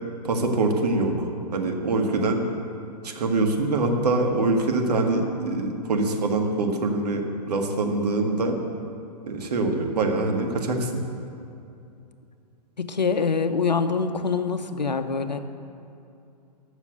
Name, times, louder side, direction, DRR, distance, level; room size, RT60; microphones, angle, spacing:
voice 1, 0.2-2.4 3.0-8.6 9.3-10.9, right 2 dB, 70° right, 3 dB, 1.7 m, -24 dB
voice 2, 12.8-15.4, left 5 dB, 90° left, 9 dB, 0.8 m, -25 dB
13.0 x 6.3 x 8.0 m, 2.7 s
figure-of-eight pair, 120°, 21 cm